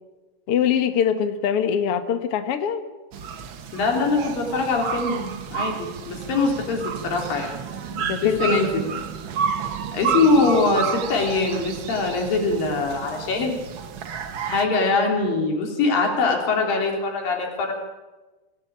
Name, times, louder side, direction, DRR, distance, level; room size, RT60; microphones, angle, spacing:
voice 1, 0.5-2.8 8.0-8.6, left 8 dB, 55° left, 8 dB, 1.7 m, -23 dB
sound 1, 3.1-14.7, right 7 dB, 70° right, 1.1 m, -31 dB
voice 2, 3.7-7.6 7.9-8.7 9.9-13.7 14.5-17.7, left 3 dB, 75° left, 1 dB, 5.1 m, -23 dB
24.5 x 17.0 x 8.8 m, 1.2 s
omnidirectional pair, 4.1 m